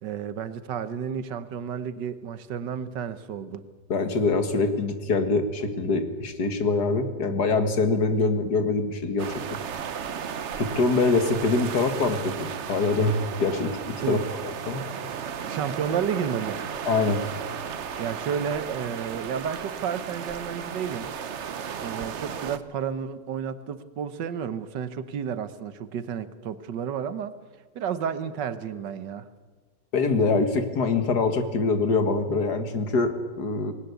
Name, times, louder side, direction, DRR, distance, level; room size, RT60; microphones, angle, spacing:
voice 1, 0.0-3.6 14.0-14.2 15.4-16.9 18.0-21.1 21.8-27.3 27.7-29.3, right 7 dB, 75° right, 14 dB, 1.7 m, -31 dB
voice 2, 3.9-9.3 10.6-14.2 14.7-14.8 16.9-17.2 29.9-33.7, left 3 dB, 65° left, 8 dB, 2.3 m, -24 dB
sound 1, 9.2-22.6, right 7 dB, 50° right, 1.0 m, -34 dB
19.5 x 19.0 x 8.2 m, 1.4 s
omnidirectional pair, 1.9 m